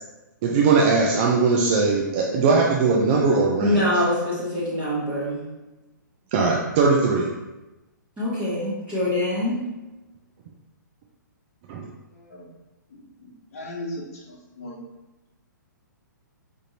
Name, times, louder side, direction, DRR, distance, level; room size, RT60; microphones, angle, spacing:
voice 1, 0.4-3.8 6.3-7.3 11.7-11.8, right 4 dB, 35° right, -2 dB, 0.4 m, -20 dB
voice 2, 3.6-5.4 8.2-9.6, left 1 dB, 10° right, -11 dB, 1.1 m, -24 dB
voice 3, 12.1-12.5 13.0-14.8, left 1 dB, 45° left, -2 dB, 0.9 m, -38 dB
5.2 x 2.5 x 2.8 m, 1.0 s
figure-of-eight pair, 125°, 11 cm